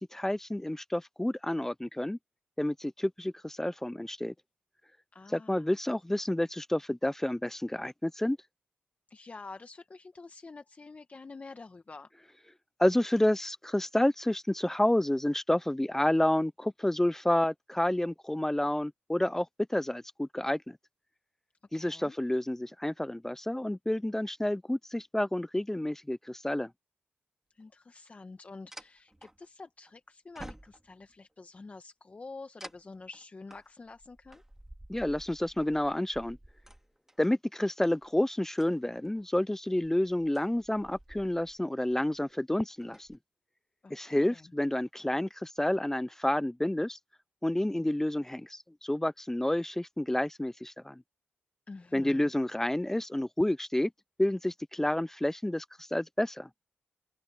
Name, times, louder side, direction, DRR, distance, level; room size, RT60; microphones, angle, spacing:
voice 1, 0.0-2.2 2.6-4.3 5.3-8.4 12.8-20.8 21.7-26.7 34.9-36.4 37.2-43.2 43.9-47.0 47.4-51.0 51.9-53.9 54.2-55.6 55.9-56.5, left 1 dB, 10° left, 0.7 m, -29 dB
voice 2, 5.1-5.7 9.1-12.1 21.7-22.2 27.5-34.4 43.8-44.5 51.7-52.3, left 3 dB, 35° left, 1.4 m, -48 dB
sound 1, 27.6-27.7 28.7-29.9 30.4-31.2 32.6-37.3 37.9-38.1 38.5-39.2 39.8-41.6 41.9-42.2 42.7-43.2, right 1 dB, 10° right, 2.7 m, -51 dB
open air
cardioid pair, 65°, 4 cm